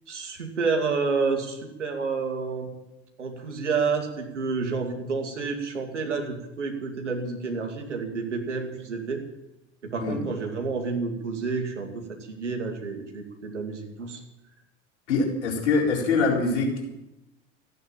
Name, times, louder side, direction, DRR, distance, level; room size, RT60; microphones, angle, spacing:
voice 1, 0.1-2.7 3.2-9.2 9.8-14.2, right 4 dB, 90° right, 4 dB, 2.5 m, -29 dB
voice 2, 15.1-16.9, left 4 dB, 75° left, -1 dB, 4.3 m, -24 dB
15.0 x 9.4 x 8.9 m, 0.92 s
hypercardioid pair, 70°, 35 cm